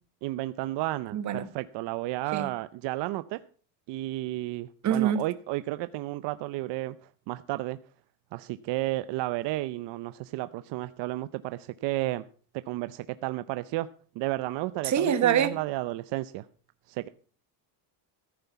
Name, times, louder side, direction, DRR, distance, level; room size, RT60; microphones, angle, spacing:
voice 1, 0.2-3.4 3.9-7.8 8.3-12.2 12.7-13.9 14.2-16.5 16.9-17.1, right 17 dB, 70° right, 0.7 m, -32 dB
voice 2, 1.1-1.5 2.3-2.5 4.8-5.2 14.8-15.5, right 9 dB, 40° right, 1.5 m, -24 dB
14.5 x 9.6 x 5.8 m
cardioid pair, 155°, 44 cm